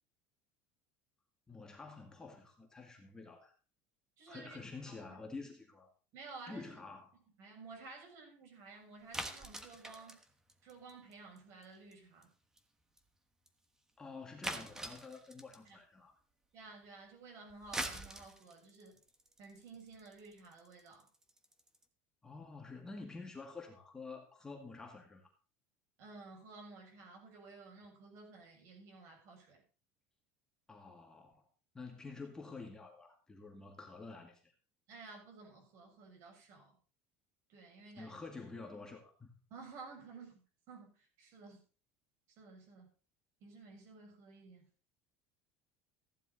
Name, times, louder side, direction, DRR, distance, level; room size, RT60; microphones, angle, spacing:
voice 1, 1.5-3.5 4.3-5.9 6.5-7.1 14.0-16.1 22.2-25.2 30.7-31.5 31.7-34.5 38.0-39.3, left 3 dB, 10° left, 2.0 m, -49 dB
voice 2, 4.2-4.6 4.9-5.2 6.1-6.8 7.4-10.2 10.6-12.3 15.6-15.8 16.5-19.0 19.4-21.1 26.0-29.6 34.9-36.8 37.5-38.2 39.5-41.6 42.3-42.9 43.4-44.7, right 4 dB, 50° right, 7.1 m, -53 dB
sound 1, 9.1-11.4 11.6-11.9 12.2-12.3 12.6-12.7 13.0-13.1 13.5-13.6 14.4-15.7 17.5-21.8, right 1 dB, 10° right, 1.3 m, -43 dB
15.0 x 11.0 x 4.1 m
cardioid pair, 160°, 6 cm